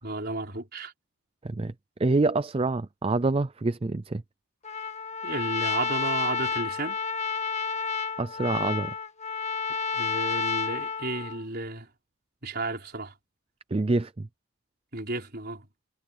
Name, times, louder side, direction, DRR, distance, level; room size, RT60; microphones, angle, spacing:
voice 1, 0.0-0.9 5.2-7.0 9.9-11.9 12.4-13.1 14.9-15.7, right 2 dB, 45° right, 5.1 m, -33 dB
voice 2, 2.0-4.2 8.2-8.9 13.7-14.3, right 3 dB, 25° right, 0.4 m, -26 dB
Trumpet, 4.6-11.4, left 5 dB, 30° left, 1.7 m, -30 dB
head